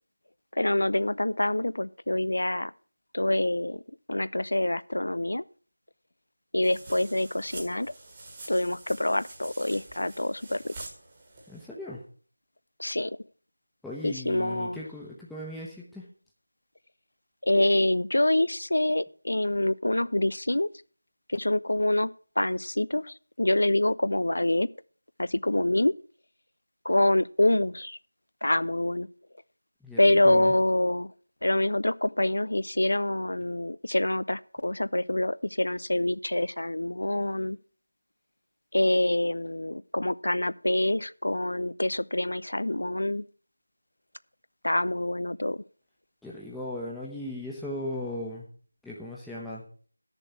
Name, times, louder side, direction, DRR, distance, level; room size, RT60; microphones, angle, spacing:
voice 1, 0.6-2.7 3.1-3.8 4.1-5.4 6.5-7.9 8.5-10.7 12.8-13.2 14.0-14.8 17.4-20.7 21.3-22.1 22.4-24.7 25.2-25.9 26.9-28.0 28.4-29.1 30.0-31.1 31.4-37.6 38.7-43.2 44.6-45.6, left 1 dB, 65° left, 18 dB, 0.5 m, -26 dB
sound 1, 6.6-11.7, right 2 dB, 20° right, 1.7 m, -46 dB
voice 2, 11.5-12.0 13.8-16.0 29.8-30.5 46.2-48.4 48.8-49.6, left 1 dB, ahead, -8 dB, 1.2 m, -37 dB
13.0 x 6.9 x 5.8 m, 0.42 s
figure-of-eight pair, 170°, 0 cm